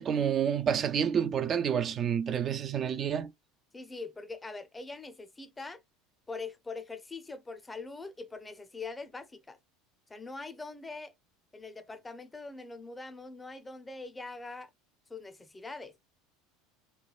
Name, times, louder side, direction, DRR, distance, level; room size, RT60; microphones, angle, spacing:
voice 1, 0.0-3.3, right 8 dB, 35° right, 0.3 m, -29 dB
voice 2, 3.7-5.8 6.3-9.6 10.1-11.1 11.5-14.7 15.1-15.9, left 3 dB, 15° left, 0.5 m, -43 dB
3.2 x 2.2 x 2.3 m
hypercardioid pair, 75°, 0 cm